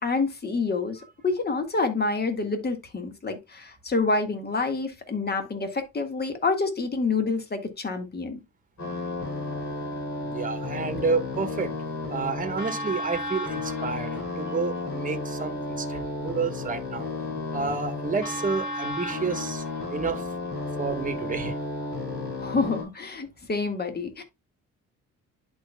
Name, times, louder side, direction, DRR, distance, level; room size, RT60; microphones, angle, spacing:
voice 1, 0.0-8.4 22.4-24.2, left 3 dB, 30° left, 1.7 m, -27 dB
sound 1, 8.8-22.8, left 2 dB, 60° left, 4.5 m, -32 dB
voice 2, 10.2-11.7 12.1-17.1 17.5-19.6 19.9-20.2 20.8-21.6, right 4 dB, 25° right, 1.3 m, -30 dB
11.5 x 4.5 x 2.2 m
cardioid pair, 90°, 30 cm